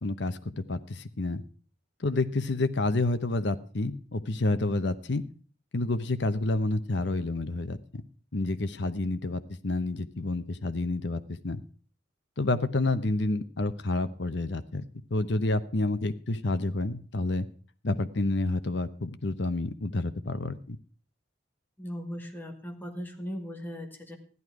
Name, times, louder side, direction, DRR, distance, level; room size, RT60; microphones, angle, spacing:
voice 1, 0.0-1.4 2.0-5.2 5.7-7.8 8.3-11.6 12.4-14.9 15.1-17.5 17.8-20.8, left 2 dB, 60° left, 11 dB, 0.8 m, -29 dB
voice 2, 21.8-24.2, equal, 10° left, 3 dB, 1.6 m, -38 dB
14.0 x 11.0 x 4.8 m, 0.41 s
head